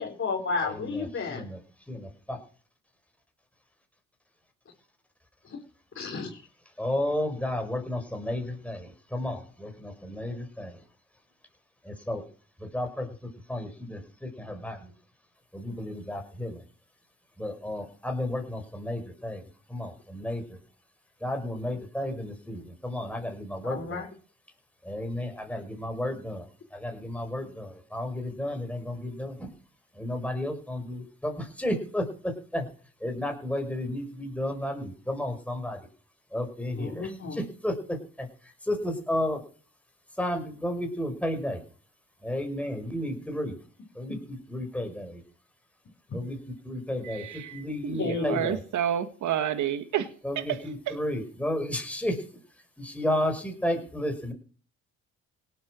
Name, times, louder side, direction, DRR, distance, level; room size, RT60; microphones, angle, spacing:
voice 1, 0.0-1.5 6.0-6.4 23.6-24.1 36.8-37.4 48.0-48.5, left 4 dB, 45° left, 0 dB, 3.8 m, -32 dB
voice 2, 0.7-1.6 1.9-2.4 6.8-10.8 11.9-12.2 12.6-13.1 13.5-14.9 15.5-16.6 17.4-19.4 19.7-20.4 21.2-24.0 24.8-26.4 26.7-29.5 30.0-32.7 33.0-35.8 36.3-38.3 38.7-39.4 40.2-41.6 42.2-43.5 44.0-45.2 46.1-46.4 46.6-47.2 47.5-48.6 50.2-52.2 52.8-54.3, left 1 dB, 5° left, 4 dB, 5.3 m, -32 dB
voice 3, 47.0-50.1 50.4-51.0, right 10 dB, 75° right, 10 dB, 1.8 m, -30 dB
18.0 x 8.1 x 6.3 m, 0.41 s
cardioid pair, 90°, 30 cm